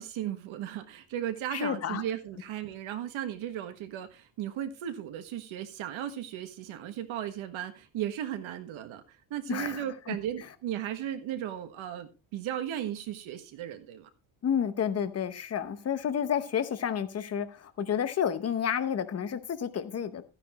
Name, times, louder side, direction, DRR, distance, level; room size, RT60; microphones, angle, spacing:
voice 1, 0.0-14.1, right 11 dB, 75° right, 1.5 m, -36 dB
voice 2, 1.5-2.0 9.5-10.2 14.4-20.2, left 8 dB, 30° left, 0.8 m, -30 dB
13.5 x 9.8 x 3.0 m
cardioid pair, 180°, 48 cm